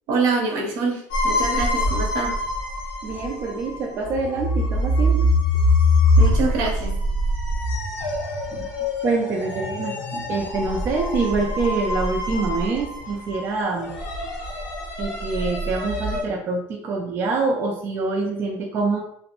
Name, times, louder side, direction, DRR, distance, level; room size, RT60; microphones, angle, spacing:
voice 1, 0.1-2.3 6.2-7.0, right 4 dB, 70° right, 1 dB, 0.7 m, -25 dB
sound 1, 1.1-16.2, left 1 dB, 70° left, 0.8 m, -24 dB
voice 2, 3.0-5.3 8.5-8.7 9.0-13.9 15.0-19.0, right 3 dB, 35° right, 0 dB, 0.3 m, -25 dB
2.5 x 2.0 x 2.8 m, 0.69 s
cardioid pair, 140°, 7 cm